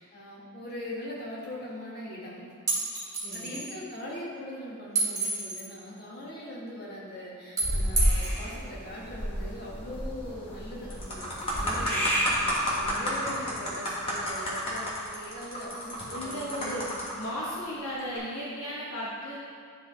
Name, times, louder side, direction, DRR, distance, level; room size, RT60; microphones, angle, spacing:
voice 1, 0.0-2.5 3.3-16.9, left 1 dB, 45° left, -6 dB, 1.5 m, -41 dB
sound 1, 2.7-3.7 4.9-5.7 7.6-8.4, right 3 dB, 15° right, 1.5 m, -29 dB
voice 2, 3.2-3.6 12.4-12.8 16.1-16.8 17.2-19.4, equal, 75° left, -6 dB, 1.0 m, -36 dB
sound 2, 7.6-12.9, equal, 10° left, 0.9 m, -31 dB
sound 3, 10.3-10.5 10.9-17.3 18.0-18.2, equal, 25° left, 1.2 m, -32 dB
10.0 x 3.6 x 3.3 m, 2.5 s
head